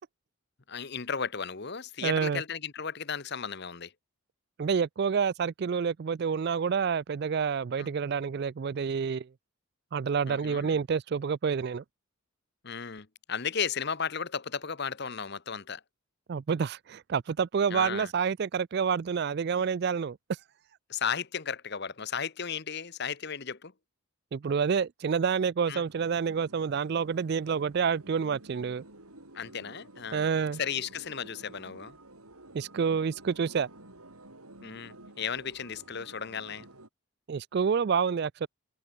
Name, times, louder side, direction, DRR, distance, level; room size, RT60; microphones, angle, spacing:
voice 1, 0.7-3.9 7.8-7.9 10.3-10.8 12.6-15.8 17.7-18.1 20.9-23.7 25.7-25.8 29.3-30.3 30.6-32.0 34.6-36.7, left 6 dB, 50° left, 1.0 m, -35 dB
voice 2, 2.0-2.4 4.6-9.3 9.9-11.8 16.3-20.2 24.3-28.8 30.1-30.6 32.5-33.7 37.3-38.5, right 6 dB, 45° right, 0.3 m, -28 dB
sound 1, 25.9-36.9, right 1 dB, 85° right, 7.4 m, -51 dB
head